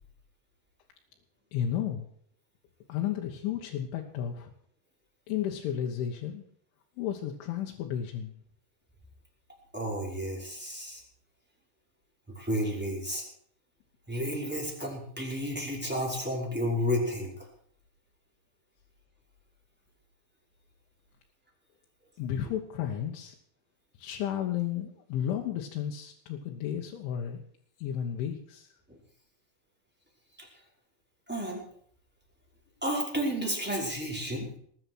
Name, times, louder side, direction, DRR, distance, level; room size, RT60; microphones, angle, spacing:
voice 1, 1.5-2.1 2.9-4.5 5.3-6.4 7.0-8.3 22.2-23.4 24.0-27.4 27.8-28.7, left 10 dB, 80° left, 0 dB, 3.8 m, -33 dB
voice 2, 9.7-11.0 12.3-13.2 14.1-17.3 28.9-29.0 30.4-30.5 31.3-31.6 32.8-34.5, equal, ahead, -2 dB, 4.7 m, -31 dB
20.0 x 9.8 x 6.3 m, 0.64 s
omnidirectional pair, 5.4 m